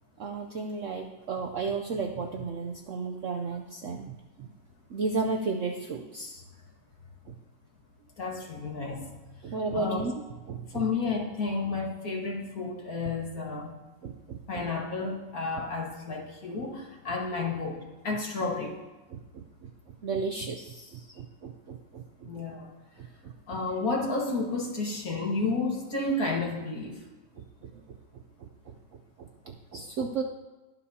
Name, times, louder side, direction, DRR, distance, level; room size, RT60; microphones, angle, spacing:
voice 1, 0.2-4.5 4.9-6.4 7.3-7.4 9.4-10.1 10.5-10.8 14.0-14.6 16.6-16.7 19.1-22.3 23.0-23.6 27.4-28.7 29.2-30.2, right 4 dB, 85° right, 4 dB, 0.6 m, -34 dB
voice 2, 8.2-9.1 9.7-10.0 10.7-13.7 14.5-18.8 22.2-22.7 23.5-27.0, left 3 dB, 50° left, -1 dB, 2.0 m, -31 dB
21.0 x 7.1 x 2.8 m, 1.2 s
omnidirectional pair, 2.2 m